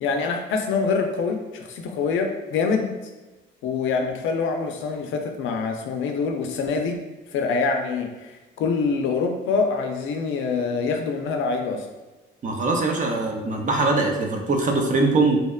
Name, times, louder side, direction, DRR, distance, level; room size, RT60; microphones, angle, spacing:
voice 1, 0.0-2.9 3.6-7.0 7.3-11.9, left 4 dB, 80° left, 4 dB, 0.4 m, -25 dB
voice 2, 12.4-15.4, right 3 dB, 40° right, 2 dB, 0.5 m, -22 dB
2.7 x 2.1 x 2.2 m, 1.2 s
cardioid pair, 90°, 20 cm